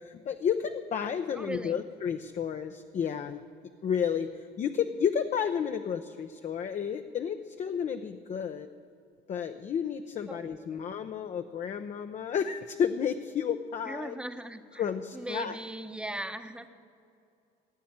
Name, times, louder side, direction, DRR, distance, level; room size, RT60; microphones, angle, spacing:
voice 1, 0.0-3.4 3.8-8.7 9.3-14.2 14.8-15.6, left 7 dB, 45° left, 7 dB, 0.7 m, -31 dB
voice 2, 1.3-1.8 10.3-10.4 10.7-10.8 13.9-14.8 15.1-16.7, right 1 dB, 5° right, 9 dB, 0.9 m, -38 dB
17.0 x 9.2 x 8.7 m, 2.5 s
cardioid pair, 110°, 17 cm